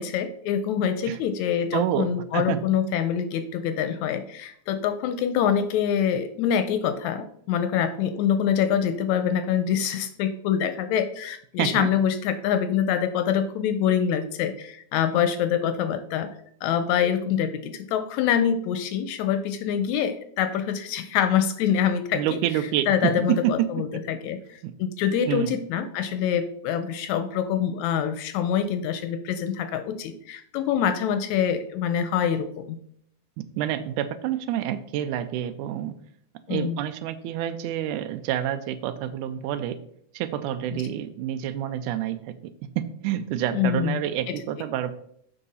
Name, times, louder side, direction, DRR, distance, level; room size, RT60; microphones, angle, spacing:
voice 1, 0.0-16.3 16.6-22.4 22.9-32.8 36.5-36.8 43.5-44.0 44.3-44.4, left 8 dB, 80° left, 9 dB, 1.8 m, -25 dB
voice 2, 1.7-2.6 11.6-11.9 22.1-23.8 24.6-24.7 25.3-25.6 33.4-35.9 36.5-39.8 40.1-42.2 42.8-44.9, right 11 dB, 85° right, 12 dB, 2.1 m, -28 dB
7.3 x 5.5 x 4.1 m, 0.67 s
omnidirectional pair, 3.6 m